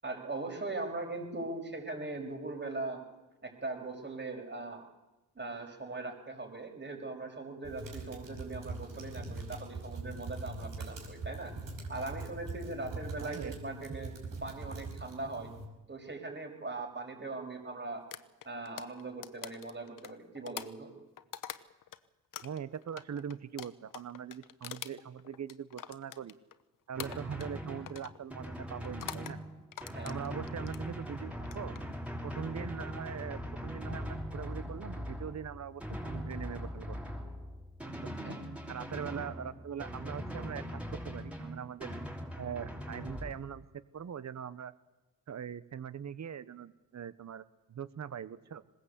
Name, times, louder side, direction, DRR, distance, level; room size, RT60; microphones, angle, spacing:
voice 1, 0.0-3.0 3.4-4.8 5.3-11.5 11.9-14.1 14.4-15.5 15.9-18.0 18.4-20.9 29.9-30.1 38.2-38.4, right 3 dB, 30° right, 3 dB, 5.9 m, -40 dB
sound 1, 7.6-15.6, right 3 dB, 70° right, 5.4 m, -42 dB
voice 2, 13.2-13.6 13.9-14.0 22.4-26.3 26.9-29.4 30.0-31.7 32.2-37.0 38.0-38.1 38.7-41.9 42.4-43.7 43.9-44.7 45.3-48.6, right 8 dB, 50° right, 16 dB, 1.1 m, -42 dB
sound 2, 18.1-22.0 22.3-26.6 27.0-27.6 27.9-28.2 28.8-29.4 29.7-30.8 31.4-31.8, left 10 dB, 65° left, 1.1 m, -45 dB
Drum, 26.9-43.3, equal, 5° right, 5.4 m, -41 dB
20.5 x 18.0 x 8.3 m, 1.1 s
cardioid pair, 60°, 34 cm